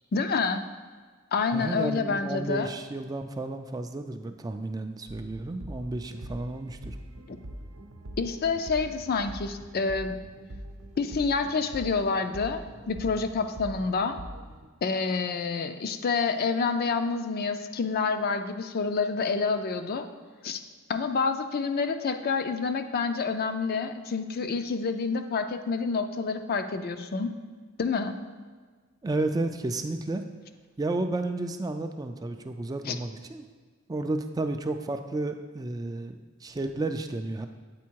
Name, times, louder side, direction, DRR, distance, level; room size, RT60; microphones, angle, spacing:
voice 1, 0.1-0.6 1.3-2.7 7.3-7.4 8.2-10.2 11.0-14.2 14.8-20.1 20.4-20.6 20.9-27.3 27.8-28.2 32.9-33.0, left 4 dB, 45° left, 8 dB, 0.4 m, -28 dB
voice 2, 1.5-7.0 29.0-30.2 30.8-33.5 33.9-37.5, right 2 dB, 20° right, 6 dB, 0.3 m, -32 dB
sound 1, 5.1-14.7, right 1 dB, 75° right, 0.7 m, -43 dB
8.4 x 4.3 x 4.6 m, 1.5 s
head